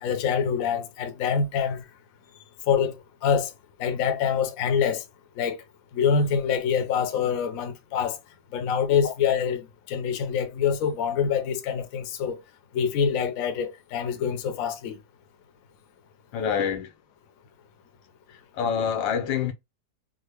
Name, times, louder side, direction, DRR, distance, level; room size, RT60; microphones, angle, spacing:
voice 1, 0.0-1.8 2.7-2.9 3.2-3.5 3.8-5.0 5.4-5.6 5.9-8.2 8.5-12.4 12.7-15.0, left 7 dB, 65° left, 0.9 m, -25 dB
voice 2, 16.3-16.9 18.5-19.5, left 7 dB, 85° left, 1.5 m, -26 dB
3.7 x 2.0 x 3.2 m
omnidirectional pair, 2.0 m